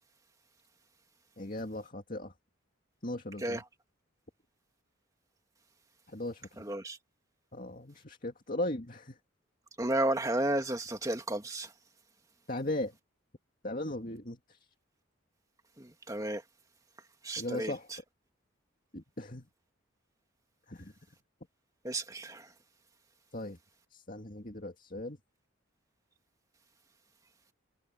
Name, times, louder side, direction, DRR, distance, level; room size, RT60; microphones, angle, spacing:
voice 1, 1.4-2.3 3.0-3.6 6.1-6.6 7.5-9.2 12.5-12.9 13.6-14.6 17.4-17.9 18.9-19.5 20.7-20.9 23.3-23.6 23.9-25.2, left 1 dB, 40° left, 2.2 m, -38 dB
voice 2, 6.6-7.0 9.8-11.7 15.8-16.4 17.2-17.7 21.8-22.4, right 1 dB, 15° right, 2.0 m, -32 dB
head